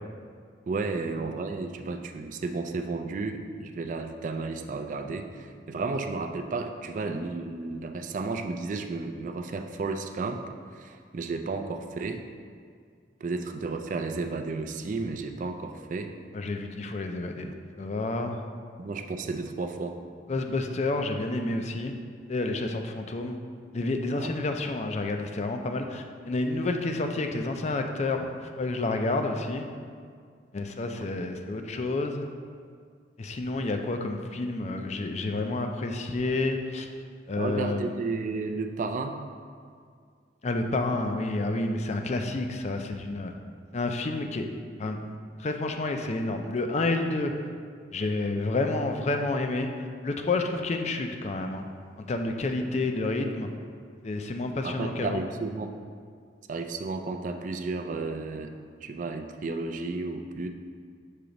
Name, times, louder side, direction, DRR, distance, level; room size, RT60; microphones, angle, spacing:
voice 1, 0.7-10.4 10.7-12.2 13.2-16.1 18.8-20.0 24.2-24.3 31.0-31.1 37.4-39.2 54.6-55.7 56.5-58.5 58.8-60.5, right 3 dB, 45° right, 6 dB, 0.4 m, -33 dB
voice 2, 16.3-18.4 20.3-21.9 22.3-23.4 23.7-28.3 28.6-29.7 30.5-32.3 33.2-36.9 37.3-37.9 40.4-43.3 43.7-44.5 44.8-45.0 45.4-47.3 47.9-51.6 52.1-53.5 54.0-55.2, left 2 dB, 40° left, 5 dB, 0.4 m, -29 dB
6.5 x 2.9 x 5.0 m, 2.1 s
head